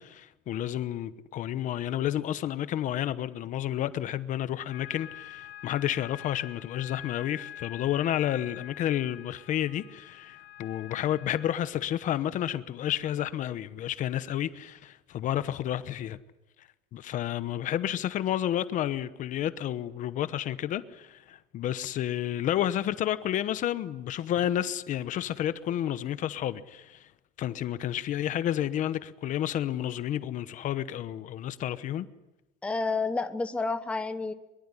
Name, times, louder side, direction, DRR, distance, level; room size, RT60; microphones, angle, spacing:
voice 1, 0.0-16.2 16.6-27.1 27.4-32.1, left 11 dB, 40° left, 1.0 m, -31 dB
sound 1, 4.7-11.5, left 11 dB, 55° left, 1.2 m, -46 dB
voice 2, 32.6-34.3, left 3 dB, 5° left, 0.9 m, -30 dB
23.0 x 22.5 x 9.8 m
cardioid pair, 175°, 20 cm